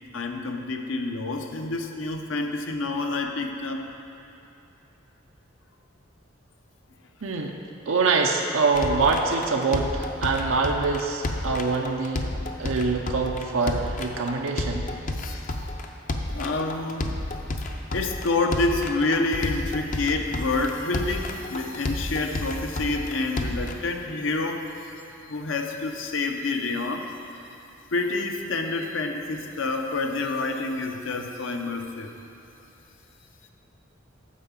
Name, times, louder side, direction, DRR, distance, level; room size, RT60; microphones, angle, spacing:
voice 1, 0.1-3.8 15.2-15.7 16.3-17.2 17.9-24.9 25.3-27.1 27.9-32.1, left 3 dB, 75° left, 4 dB, 0.7 m, -28 dB
voice 2, 7.2-7.5 7.9-12.2 12.6-14.9, right 4 dB, 90° right, 1 dB, 0.6 m, -24 dB
sound 1, 8.7-23.7, left 2 dB, 40° left, 0.6 m, -31 dB
8.5 x 4.8 x 7.2 m, 2.9 s
head